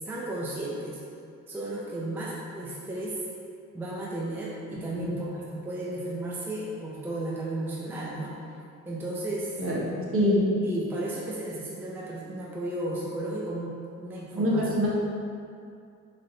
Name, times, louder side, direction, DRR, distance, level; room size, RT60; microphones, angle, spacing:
voice 1, 0.1-1.0 1.5-3.2 3.7-8.3 8.9-9.6 10.6-13.7 14.0-14.7, right 1 dB, 5° right, -5 dB, 0.5 m, -34 dB
voice 2, 9.6-10.5 14.3-14.9, equal, 45° right, -5 dB, 1.0 m, -25 dB
3.8 x 3.2 x 2.7 m, 2.4 s
cardioid pair, 90°, 30 cm